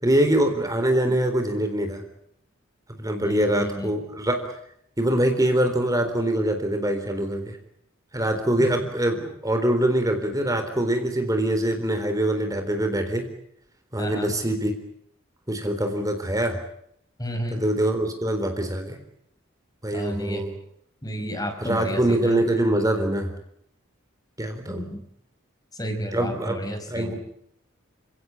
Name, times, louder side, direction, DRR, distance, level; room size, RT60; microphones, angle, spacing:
voice 1, 0.0-2.0 3.0-4.4 5.0-7.6 8.1-13.3 13.9-14.8 15.5-16.6 17.5-19.0 19.8-20.5 21.6-23.3 24.4-24.8 26.1-26.6 26.9-27.1, right 1 dB, 20° right, 6 dB, 3.9 m, -24 dB
voice 2, 3.2-4.0 8.6-8.7 14.0-14.4 17.2-17.7 19.9-20.5 21.0-22.4 24.7-25.0 25.7-27.1, equal, 20° left, 7 dB, 4.9 m, -31 dB
30.0 x 17.0 x 10.0 m, 0.73 s
head